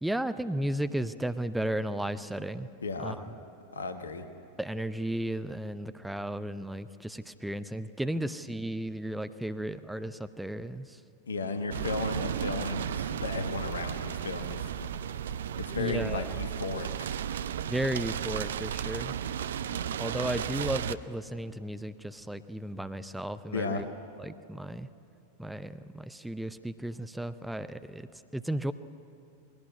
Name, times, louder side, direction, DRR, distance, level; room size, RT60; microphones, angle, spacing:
voice 1, 0.0-2.7 3.0-3.2 4.6-11.0 15.8-16.3 17.7-19.1 20.0-23.9 24.2-24.9 25.4-28.1 28.3-28.7, right 1 dB, 5° right, 11 dB, 0.6 m, -34 dB
voice 2, 2.8-3.2 3.7-4.3 11.3-14.9 15.6-16.9 23.5-23.8, left 3 dB, 70° left, 8 dB, 1.1 m, -34 dB
sound 1, 11.7-20.9, right 9 dB, 60° right, 0.5 m, -34 dB
20.0 x 17.0 x 9.5 m, 2.6 s
figure-of-eight pair, 90°, 0 cm